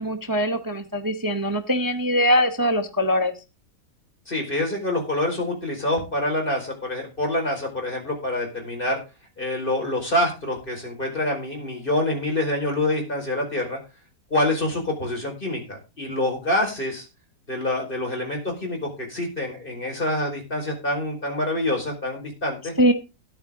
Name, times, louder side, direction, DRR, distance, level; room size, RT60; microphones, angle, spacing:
voice 1, 0.0-3.3 22.8-22.9, equal, 15° right, 8 dB, 0.7 m, -22 dB
voice 2, 4.3-9.0 9.4-13.8 14.3-17.1 17.5-22.7, left 1 dB, 30° left, 1 dB, 4.9 m, -26 dB
14.0 x 10.5 x 3.7 m, 0.28 s
omnidirectional pair, 1.9 m